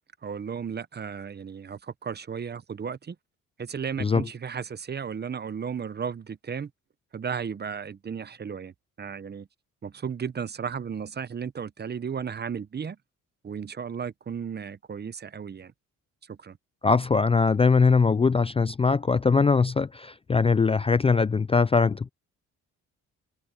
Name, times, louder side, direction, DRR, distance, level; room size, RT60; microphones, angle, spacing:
voice 1, 0.2-3.2 3.6-6.7 7.1-9.5 9.8-13.0 13.4-15.7 16.3-16.6, right 7 dB, 35° right, 0.9 m, -34 dB
voice 2, 16.8-22.1, left 4 dB, 20° left, 0.4 m, -21 dB
cardioid pair, 90°, 30 cm